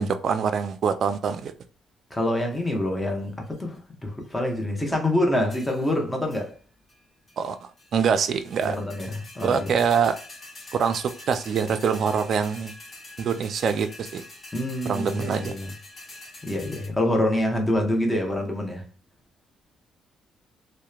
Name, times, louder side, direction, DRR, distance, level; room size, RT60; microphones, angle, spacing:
voice 1, 0.0-1.5 7.4-8.8 9.4-10.1 10.8-12.7 13.2-14.2 14.9-15.5, right 6 dB, 60° right, 0.3 m, -24 dB
voice 2, 2.1-6.5 8.6-9.8 14.5-15.7 16.4-18.8, left 1 dB, 10° left, 0.8 m, -26 dB
sound 1, 2.2-2.7 3.3-3.8 4.2-4.9 5.5-6.0 6.3-6.5 6.9-7.0 7.3-7.9 8.2-16.9, left 2 dB, 40° left, 1.1 m, -45 dB
2.8 x 2.0 x 2.3 m
cardioid pair, 90°, 0 cm